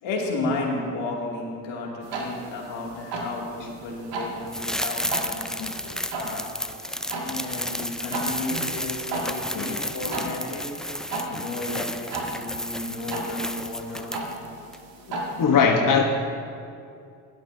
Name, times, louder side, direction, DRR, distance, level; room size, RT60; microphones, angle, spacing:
voice 1, 0.0-5.4 6.1-6.5 7.2-10.7 11.3-14.2, left 2 dB, 75° left, -2 dB, 2.6 m, -33 dB
sound 1, 2.0-15.4, right 2 dB, 65° right, 2.3 m, -36 dB
sound 2, 4.5-14.5 14.7-14.8, left 1 dB, ahead, 0.4 m, -32 dB
voice 2, 5.6-6.1 8.5-8.7 9.5-10.4 11.3-11.4 15.1-16.0, left 6 dB, 45° left, 2 dB, 1.2 m, -24 dB
17.0 x 12.0 x 2.7 m, 2.5 s
hypercardioid pair, 55°, 46 cm